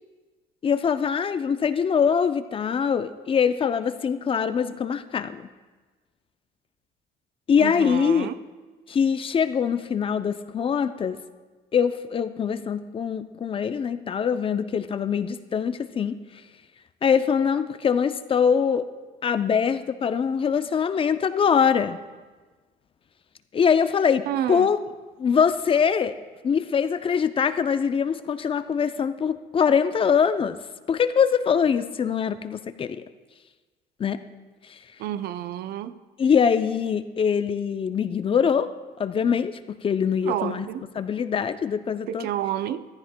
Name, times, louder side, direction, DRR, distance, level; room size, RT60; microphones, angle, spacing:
voice 1, 0.6-5.5 7.5-8.3 8.9-11.2 11.7-16.2 17.0-18.9 19.2-22.0 23.5-24.8 25.2-26.2 26.4-30.6 30.9-33.0 34.0-34.2 34.7-34.8 36.2-38.7 39.0-39.5 39.8-40.7 41.0-42.3, left 7 dB, 30° left, 0.4 m, -23 dB
voice 2, 7.6-8.4 24.3-24.7 35.0-35.9 40.2-40.8 42.1-42.9, right 11 dB, 70° right, 0.5 m, -29 dB
14.5 x 14.0 x 2.2 m
cardioid pair, 110°, 17 cm